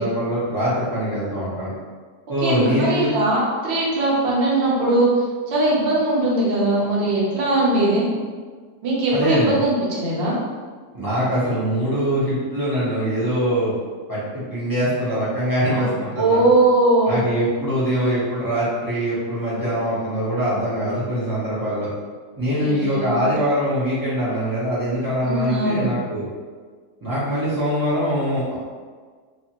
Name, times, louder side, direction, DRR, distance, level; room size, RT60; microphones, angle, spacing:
voice 1, 0.0-1.7 2.3-3.1 9.1-9.6 10.9-13.7 14.1-16.4 17.0-21.9 22.4-26.3 27.0-28.6, equal, 30° right, -11 dB, 0.4 m, -23 dB
voice 2, 2.4-8.1 8.8-10.4 15.7-15.9 16.2-17.2 22.5-23.3 25.2-25.9, right 2 dB, 50° right, -6 dB, 0.9 m, -20 dB
2.7 x 2.4 x 2.8 m, 1.6 s
omnidirectional pair, 1.7 m